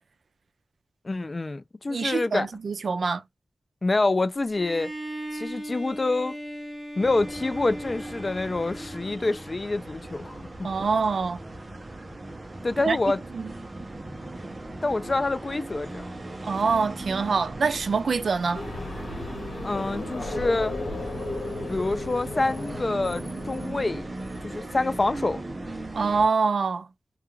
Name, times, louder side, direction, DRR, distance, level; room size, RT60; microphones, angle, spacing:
voice 1, 1.0-2.5 3.8-4.9 5.3-6.4 7.0-10.9 12.6-13.2 14.8-16.0 19.6-20.8 21.7-24.1 24.4-25.4, left 2 dB, 35° left, 0.3 m, -27 dB
voice 2, 1.9-3.2 10.6-11.4 12.8-13.0 13.3-13.5 16.4-18.6 25.9-26.9, right 5 dB, 85° right, 0.3 m, -25 dB
Bowed string instrument, 4.5-9.6, equal, 5° right, 1.0 m, -38 dB
sound 1, 7.0-26.3, right 2 dB, 35° right, 0.6 m, -38 dB
sound 2, 18.5-24.0, left 2 dB, 75° left, 1.0 m, -35 dB
2.3 x 2.3 x 3.0 m
wide cardioid pair, 115°, 0 cm